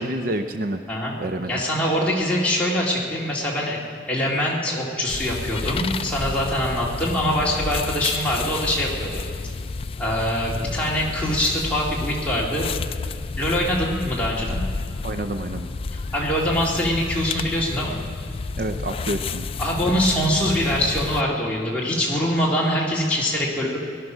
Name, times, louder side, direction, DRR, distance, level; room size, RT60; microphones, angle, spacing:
voice 1, 0.0-0.8 1.2-1.5 15.0-15.7 18.6-19.5, right 1 dB, 50° right, 8 dB, 0.5 m, -28 dB
voice 2, 1.5-3.8 4.1-9.2 10.0-12.7 13.4-14.6 15.9-18.0 19.6-23.8, equal, 5° left, -5 dB, 2.2 m, -23 dB
sound 1, 5.1-21.2, left 4 dB, 30° left, 0.3 m, -31 dB
19.0 x 12.0 x 6.2 m, 2.2 s
head